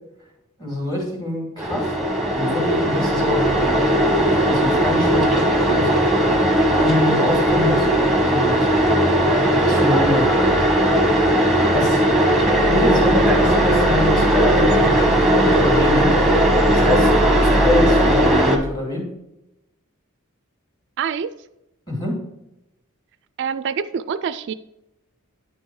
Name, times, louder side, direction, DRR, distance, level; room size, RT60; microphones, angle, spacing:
voice 1, 0.6-2.0 2.3-3.8 4.2-5.9 6.8-7.9 8.3-8.7 9.6-10.3 11.6-12.0 12.6-16.1 16.7-17.1 17.4-19.1 21.9-22.2, left 1 dB, 20° left, -1 dB, 2.5 m, -25 dB
sound 1, 1.6-18.6, right 1 dB, ahead, 1.0 m, -17 dB
voice 2, 21.0-21.3 23.4-24.5, right 7 dB, 55° right, 14 dB, 0.3 m, -25 dB
9.7 x 4.4 x 4.7 m, 0.89 s
head